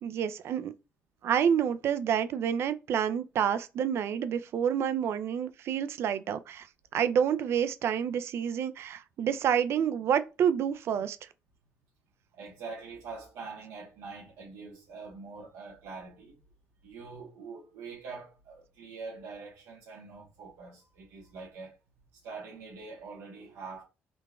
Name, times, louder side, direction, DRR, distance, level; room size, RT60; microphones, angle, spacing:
voice 1, 0.0-0.7 1.2-6.7 6.9-11.2, right 8 dB, 60° right, 0.4 m, -28 dB
voice 2, 12.3-16.4 16.8-21.8 22.1-23.8, right 4 dB, 90° right, 1.1 m, -44 dB
3.8 x 2.2 x 3.6 m
cardioid pair, 125°, 5 cm